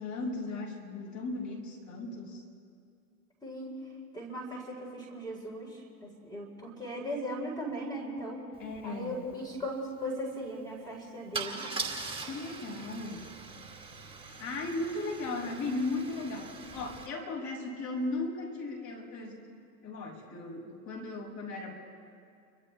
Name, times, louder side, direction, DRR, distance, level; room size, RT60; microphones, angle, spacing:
voice 1, 0.0-2.4 8.6-9.2 12.2-13.3 14.2-21.7, left 2 dB, 35° left, -2 dB, 6.8 m, -37 dB
voice 2, 3.4-3.7 4.1-8.4 8.8-11.7, equal, 10° left, -3 dB, 4.5 m, -38 dB
Car / Engine starting / Idling, 8.7-8.8 9.1-9.3 11.3-17.1, right 4 dB, 10° right, 2.5 m, -41 dB
30.0 x 25.0 x 3.5 m, 2.3 s
hypercardioid pair, 105°, 48 cm